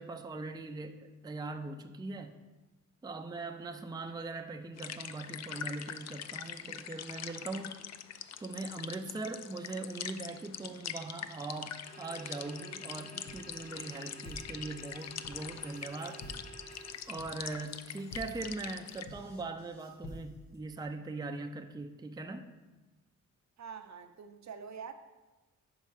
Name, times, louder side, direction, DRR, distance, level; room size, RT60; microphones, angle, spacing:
voice 1, 0.0-2.4 3.0-7.8 8.4-16.3 17.1-22.5, right 3 dB, 10° right, 6 dB, 0.5 m, -41 dB
sound 1, 4.8-19.1, left 9 dB, 50° left, 0.4 m, -44 dB
sound 2, 11.9-16.9, right 2 dB, 20° left, 1.3 m, -51 dB
sound 3, 13.3-20.6, left 1 dB, 75° left, 1.0 m, -50 dB
voice 2, 23.6-24.9, right 6 dB, 55° right, 8 dB, 0.6 m, -45 dB
5.3 x 4.8 x 5.7 m, 1.1 s
cardioid pair, 65°, 34 cm